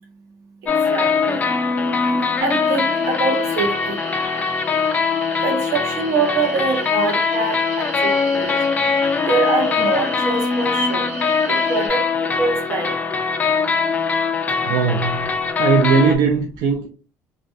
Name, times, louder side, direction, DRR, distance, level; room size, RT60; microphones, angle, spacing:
sound 1, 0.7-16.2, left 5 dB, 25° left, 0.3 m, -21 dB
voice 1, 0.9-1.4 2.0-4.0 5.4-8.6 9.3-11.1 11.5-12.9, right 4 dB, 60° right, 0.8 m, -24 dB
sound 2, 2.4-11.9, right 1 dB, 40° right, 1.0 m, -35 dB
voice 2, 14.7-15.3 15.6-16.9, right 6 dB, 80° right, 0.4 m, -18 dB
2.4 x 2.1 x 2.5 m
cardioid pair, 130°, 7 cm